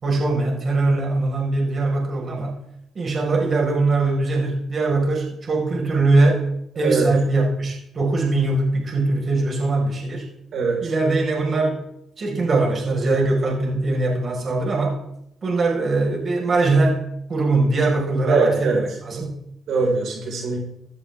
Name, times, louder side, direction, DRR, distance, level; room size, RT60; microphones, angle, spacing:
voice 1, 0.0-2.6 3.0-6.5 6.8-10.3 10.8-11.8 12.2-15.0 15.4-19.4, right 2 dB, 50° right, 0 dB, 5.2 m, -21 dB
voice 2, 10.5-10.9 18.3-18.8 19.7-20.6, right 3 dB, 75° right, -1 dB, 4.7 m, -21 dB
16.5 x 13.0 x 3.6 m, 0.75 s
cardioid pair, 80°, 0 cm